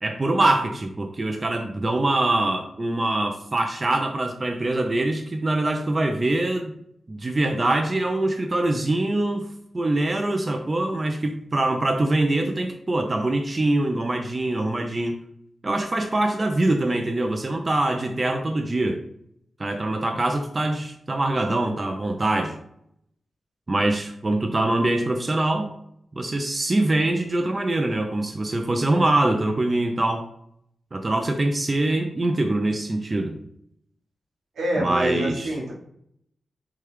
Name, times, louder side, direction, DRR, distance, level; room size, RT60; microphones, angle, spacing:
voice 1, 0.0-6.7 7.1-9.5 9.7-15.2 15.6-19.0 19.6-22.5 23.7-25.7 26.2-30.2 30.9-33.4 34.8-35.5, right 2 dB, 35° right, 4 dB, 0.3 m, -24 dB
voice 2, 34.6-35.7, equal, 85° right, -3 dB, 1.0 m, -26 dB
3.0 x 2.2 x 3.2 m, 0.73 s
cardioid pair, 60°, 0 cm